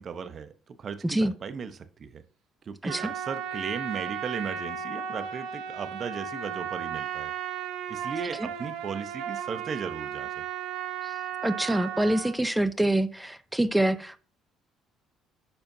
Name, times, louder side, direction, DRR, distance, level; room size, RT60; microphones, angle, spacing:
voice 1, 0.0-2.2 2.6-7.3 7.9-10.4, right 6 dB, 45° right, 0.8 m, -36 dB
Trumpet, 2.9-12.4, right 8 dB, 80° right, 1.1 m, -35 dB
voice 2, 11.4-14.2, right 1 dB, 5° right, 0.6 m, -26 dB
11.0 x 4.3 x 2.7 m
supercardioid pair, 75°, 0 cm